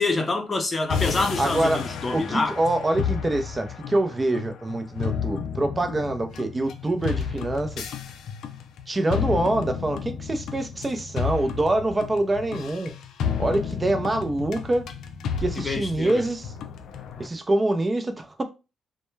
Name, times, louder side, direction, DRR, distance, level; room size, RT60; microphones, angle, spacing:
voice 1, 0.0-2.5 15.6-16.2, left 3 dB, 30° left, 0.6 m, -26 dB
sound 1, 0.9-17.3, left 7 dB, 75° left, 0.3 m, -32 dB
voice 2, 1.4-7.9 8.9-13.0 13.4-14.9 15.4-16.5 17.2-18.4, right 2 dB, 25° right, 0.5 m, -25 dB
2.1 x 2.1 x 3.1 m
cardioid pair, 90°, 0 cm